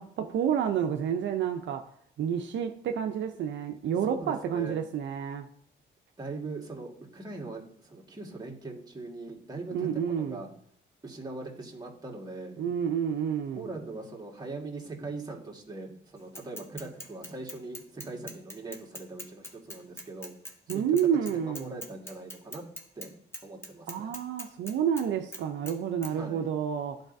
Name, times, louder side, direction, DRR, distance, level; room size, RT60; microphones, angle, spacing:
voice 1, 0.0-1.9 2.2-5.5 9.7-10.4 12.6-13.7 20.7-21.8 23.9-27.0, right 8 dB, 65° right, 0.5 m, -29 dB
voice 2, 4.0-4.8 6.2-10.5 11.0-12.6 13.6-20.8 21.3-22.6 23.0-23.1 23.4-24.1 26.1-26.5, right 2 dB, 20° right, 1.6 m, -41 dB
Bicycle / Mechanisms, 16.4-23.1 23.3-25.1 25.3-25.8 26.0-26.1, left 1 dB, 10° left, 1.1 m, -42 dB
11.5 x 4.0 x 2.6 m
cardioid pair, 90°, 20 cm